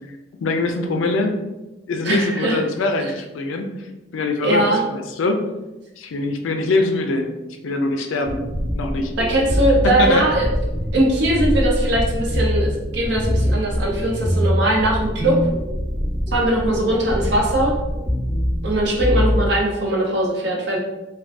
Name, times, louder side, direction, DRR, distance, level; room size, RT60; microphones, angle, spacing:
voice 1, 0.4-1.3 1.9-3.7 4.1-5.4 6.0-7.3 7.6-8.4 8.7-9.1 9.8-10.2, left 2 dB, 85° left, 5 dB, 0.4 m, -22 dB
voice 2, 2.0-2.6 3.0-3.1 4.4-4.8 9.2-10.5 10.9-15.4 16.3-17.7 18.6-20.8, right 1 dB, 60° right, -2 dB, 0.7 m, -20 dB
sound 1, 8.2-19.5, equal, 5° right, 0.6 m, -23 dB
2.5 x 2.3 x 3.3 m, 1.0 s
head